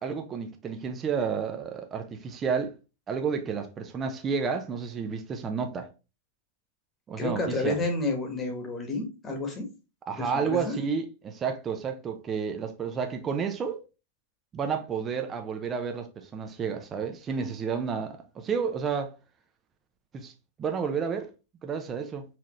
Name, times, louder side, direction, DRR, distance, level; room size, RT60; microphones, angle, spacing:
voice 1, 0.0-2.7 3.1-5.9 7.1-7.8 10.1-13.8 14.5-19.1 20.1-20.3 20.6-21.3 21.6-22.3, right 6 dB, 20° right, 0.5 m, -31 dB
voice 2, 7.2-9.6 10.2-10.7, left 2 dB, 20° left, 1.2 m, -30 dB
4.3 x 2.5 x 3.0 m
hypercardioid pair, 135°, 0 cm